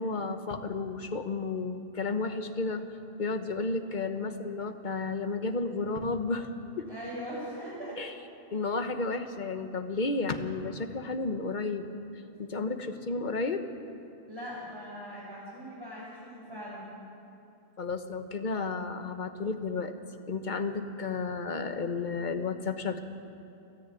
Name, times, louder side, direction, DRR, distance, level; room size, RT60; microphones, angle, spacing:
voice 1, 0.0-2.9 3.2-6.9 8.0-8.1 8.5-13.7 17.8-19.9 20.3-23.0, left 3 dB, 45° left, 8 dB, 1.2 m, -32 dB
voice 2, 6.8-8.0 14.3-16.8, equal, 25° right, -10 dB, 5.8 m, -41 dB
29.5 x 10.5 x 9.2 m, 2.7 s
omnidirectional pair, 1.1 m